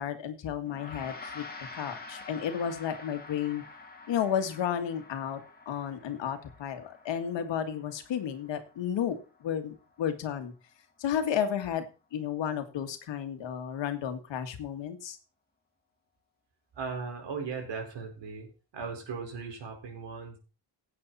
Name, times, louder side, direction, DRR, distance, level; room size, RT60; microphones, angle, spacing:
voice 1, 0.0-1.4 1.8-3.6 4.1-10.5 11.0-15.2, left 9 dB, 85° left, 8 dB, 1.9 m, -32 dB
Gong, 0.7-10.3, left 3 dB, 20° left, 2.2 m, -48 dB
voice 2, 16.7-18.5 18.7-20.4, right 5 dB, 80° right, 2 dB, 4.7 m, -37 dB
16.0 x 8.7 x 4.2 m, 0.34 s
cardioid pair, 120°, 43 cm